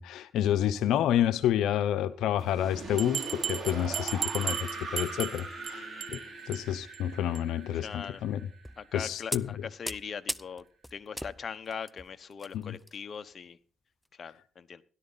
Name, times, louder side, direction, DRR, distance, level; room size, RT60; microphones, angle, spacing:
voice 1, 0.0-8.4 8.9-9.5 12.5-12.8, left 11 dB, 85° left, 0.8 m, -29 dB
sound 1, 2.4-9.3, right 3 dB, 40° right, 5.6 m, -41 dB
Bell, 3.0-5.7 6.0-6.2 6.5-6.6 6.9-7.0 7.3-7.4, right 9 dB, 60° right, 1.4 m, -34 dB
sound 2, 3.3-3.9 4.3-4.5 4.9-5.1 6.1-6.4 7.0-7.3 8.0-8.1 8.6-8.9 9.3-13.0 13.3-13.5 14.0-14.1, equal, 5° left, 0.5 m, -40 dB
voice 2, 5.7-6.4 7.7-8.2 8.8-10.6 10.9-13.6 14.1-14.8, left 6 dB, 45° left, 1.0 m, -41 dB
17.0 x 11.5 x 4.1 m
cardioid pair, 90°, 0 cm